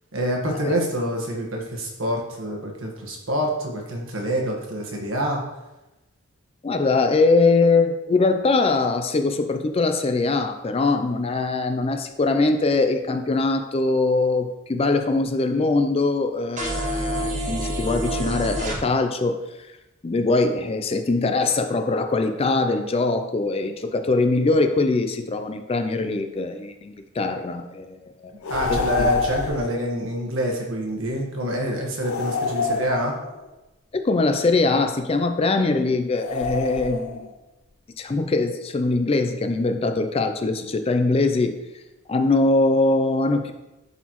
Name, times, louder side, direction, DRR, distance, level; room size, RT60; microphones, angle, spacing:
voice 1, 0.1-5.4 28.5-33.2, equal, 70° right, 0 dB, 1.4 m, -26 dB
voice 2, 6.6-19.3 20.0-28.3 28.7-28.8 33.9-37.2 38.0-41.5 42.1-43.5, left 3 dB, 30° left, 7 dB, 0.4 m, -22 dB
sound 1, 16.6-18.8, equal, 35° right, 1.1 m, -27 dB
sound 2, 28.4-29.8 32.0-33.5 36.1-37.3, left 4 dB, 85° left, 0.6 m, -27 dB
11.0 x 4.1 x 3.0 m, 1.0 s
head